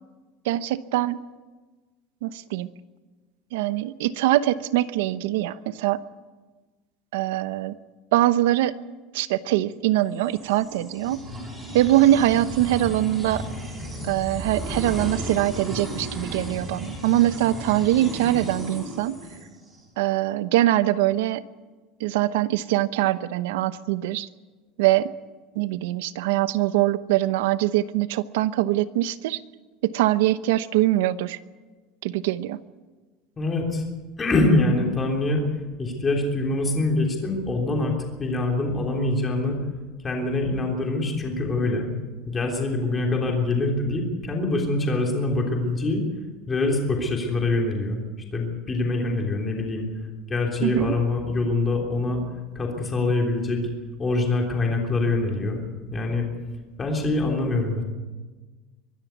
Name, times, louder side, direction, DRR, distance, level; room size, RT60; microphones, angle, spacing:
voice 1, 0.4-1.2 2.2-2.7 3.5-6.0 7.1-7.7 8.1-8.7 9.1-11.2 11.7-13.4 14.1-19.2 20.0-21.4 22.0-24.3 24.8-25.1 25.5-29.4 29.8-31.4 32.0-32.6 50.6-50.9, right 14 dB, 80° right, 14 dB, 0.9 m, -23 dB
sound 1, 10.1-19.8, equal, 10° right, 5.8 m, -34 dB
voice 2, 33.4-33.8 34.2-35.4 35.8-39.6 40.0-41.9 42.3-46.0 46.5-48.0 48.3-49.9 50.3-52.2 52.5-53.6 54.0-56.3 56.8-57.8, left 2 dB, 15° left, 1 dB, 3.4 m, -24 dB
23.5 x 13.5 x 9.4 m, 1.3 s
cardioid pair, 180°, 0 cm